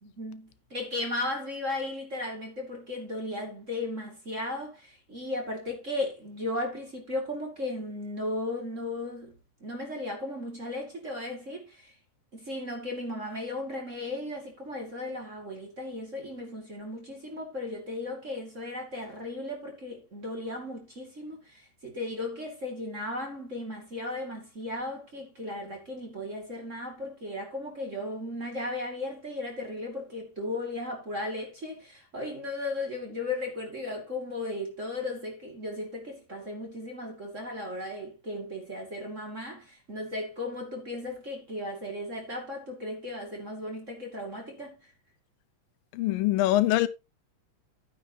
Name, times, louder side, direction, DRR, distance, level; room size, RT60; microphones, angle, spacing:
voice 1, 0.0-11.9 12.3-44.9, left 2 dB, 25° right, 2.3 m, -36 dB
voice 2, 45.9-46.9, left 15 dB, 90° left, 2.5 m, -23 dB
11.5 x 9.4 x 2.9 m
omnidirectional pair, 3.9 m